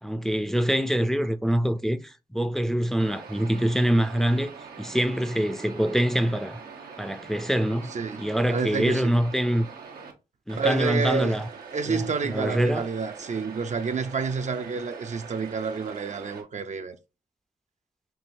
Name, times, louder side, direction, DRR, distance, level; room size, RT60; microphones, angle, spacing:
voice 1, 0.0-6.6 7.0-7.9 8.2-9.7 10.5-11.5 11.8-12.9, equal, 5° left, 0.5 m, -25 dB
sound 1, 3.0-10.1 10.5-16.4, right 5 dB, 85° right, 0.7 m, -43 dB
voice 2, 7.9-9.2 10.6-11.4 11.7-17.0, right 5 dB, 50° right, 0.5 m, -29 dB
4.6 x 2.7 x 2.6 m
cardioid pair, 45°, 15 cm